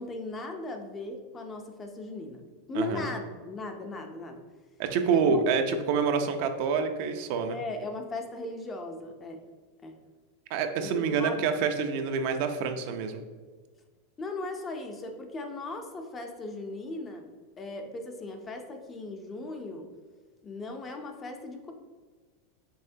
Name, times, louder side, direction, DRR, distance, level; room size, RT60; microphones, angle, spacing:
voice 1, 0.0-2.4 2.7-4.4 5.0-5.4 7.5-9.4 9.8-10.0 10.8-11.4 14.2-17.3 17.6-19.9 20.4-21.7, left 2 dB, 15° left, 4 dB, 0.5 m, -38 dB
voice 2, 2.7-3.1 4.8-7.6 10.5-13.2, right 5 dB, 50° right, 7 dB, 0.4 m, -27 dB
5.5 x 3.6 x 2.7 m, 1.4 s
supercardioid pair, 160°, 0 cm